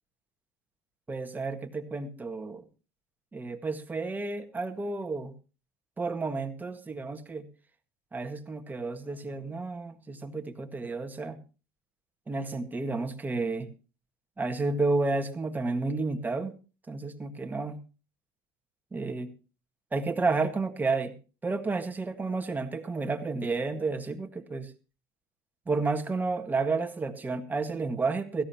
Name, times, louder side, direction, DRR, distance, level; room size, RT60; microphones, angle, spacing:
voice 1, 1.1-2.6 3.3-5.3 6.0-7.4 8.1-11.4 12.3-13.7 14.4-16.5 16.9-17.8 18.9-19.3 19.9-21.1 21.4-24.7 25.7-28.4, right 3 dB, 15° right, 6 dB, 1.7 m, -31 dB
16.5 x 14.5 x 2.9 m, 0.33 s
supercardioid pair, 90°, 10 cm